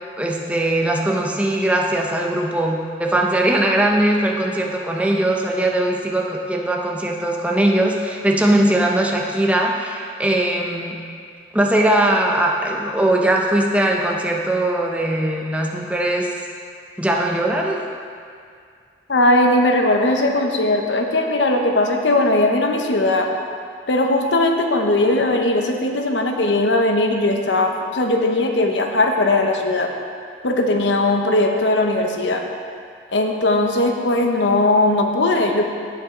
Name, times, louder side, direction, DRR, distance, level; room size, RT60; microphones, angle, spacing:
voice 1, 0.2-10.9 11.5-16.3 17.0-17.8, right 1 dB, 5° right, -1 dB, 0.8 m, -20 dB
voice 2, 19.1-23.3 23.9-29.9 30.4-32.4 33.1-35.6, left 2 dB, 85° left, 3 dB, 0.9 m, -18 dB
16.0 x 5.8 x 3.8 m, 2.3 s
head